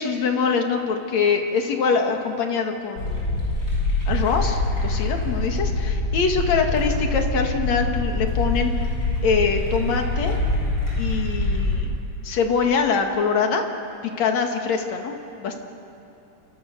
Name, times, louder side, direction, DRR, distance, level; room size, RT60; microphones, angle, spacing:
voice 1, 0.0-3.4 4.1-8.9 9.2-10.4 11.0-11.9 12.2-13.6 14.0-15.6, left 5 dB, 70° left, 4 dB, 3.1 m, -24 dB
sound 1, 3.0-11.8, left 2 dB, 40° left, 8.4 m, -24 dB
28.0 x 25.0 x 6.8 m, 2.9 s
omnidirectional pair, 3.3 m